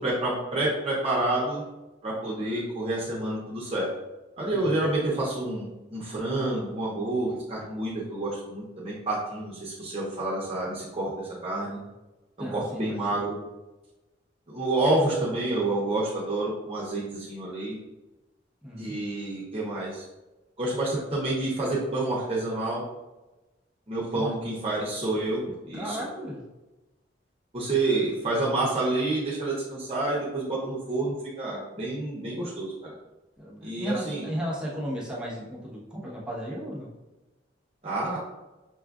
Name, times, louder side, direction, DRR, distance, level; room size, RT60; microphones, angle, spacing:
voice 1, 0.0-1.6 2.0-3.9 4.4-11.8 12.4-13.4 14.5-17.8 18.8-20.0 20.6-22.8 23.9-26.0 27.5-32.9 33.6-34.3 37.8-38.2, right 2 dB, 35° right, -6 dB, 0.7 m, -28 dB
voice 2, 12.4-13.0 18.6-19.0 24.1-24.3 25.7-26.4 33.4-36.9, equal, 5° right, -7 dB, 0.9 m, -34 dB
5.9 x 2.4 x 2.4 m, 1.1 s
head